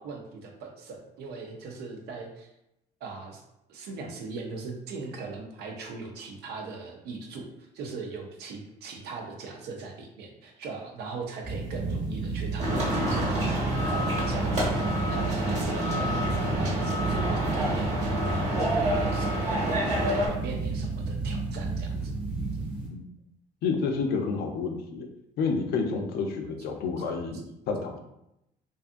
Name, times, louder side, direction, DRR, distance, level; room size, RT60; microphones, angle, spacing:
voice 1, 0.0-2.5 3.0-3.4 3.7-7.5 7.7-13.5 13.8-22.1, right 4 dB, 75° right, 3 dB, 0.6 m, -40 dB
sound 1, 11.4-22.9, right 3 dB, 5° right, 0.8 m, -32 dB
sound 2, 12.6-20.3, equal, 45° right, 1.0 m, -28 dB
voice 2, 23.6-25.1 25.4-28.0, left 4 dB, 65° left, 4 dB, 0.5 m, -29 dB
2.6 x 2.4 x 2.5 m, 0.85 s
cardioid pair, 110°, 17 cm